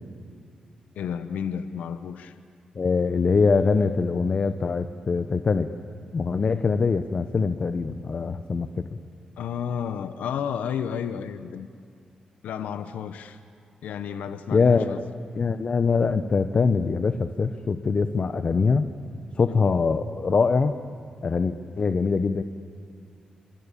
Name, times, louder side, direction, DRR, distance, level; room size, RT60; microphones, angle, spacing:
voice 1, 0.9-2.4 9.4-11.7 12.4-13.4 13.8-15.0 19.5-19.7, left 8 dB, 85° left, 11 dB, 0.9 m, -32 dB
voice 2, 2.7-5.7 6.1-8.9 14.5-15.0 15.3-18.9 19.4-20.7 21.2-22.4, left 4 dB, 50° left, 10 dB, 1.0 m, -23 dB
26.0 x 25.5 x 8.5 m, 2.2 s
cardioid pair, 60°, 3 cm